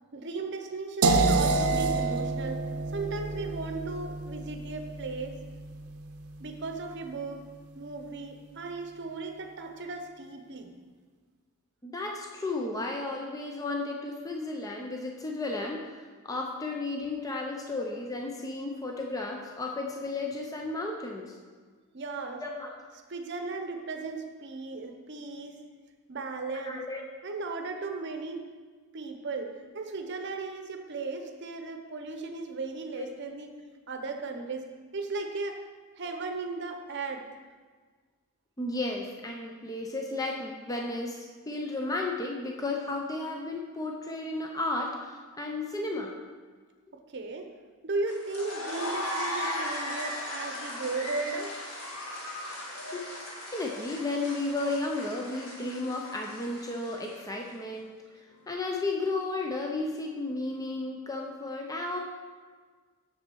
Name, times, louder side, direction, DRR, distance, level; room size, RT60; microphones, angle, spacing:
voice 1, 0.1-5.4 6.4-7.4 7.7-10.7 21.9-22.4 23.1-25.6 26.1-26.8 27.2-28.4 28.9-33.5 33.9-35.6 35.9-37.3 46.9-47.5 47.8-51.5 58.1-58.2, right 3 dB, 50° right, 5 dB, 0.8 m, -36 dB
sound 1, 1.0-6.9, right 3 dB, 80° right, 0.6 m, -29 dB
voice 2, 11.8-15.8 16.2-21.3 22.4-22.7 26.7-27.0 33.0-33.1 38.6-46.1 52.5-53.0 53.5-58.0 58.5-62.0, left 2 dB, 15° left, 0 dB, 0.6 m, -33 dB
sound 2, 48.1-57.4, left 1 dB, 65° left, 1.7 m, -37 dB
7.2 x 6.8 x 4.6 m, 1.5 s
head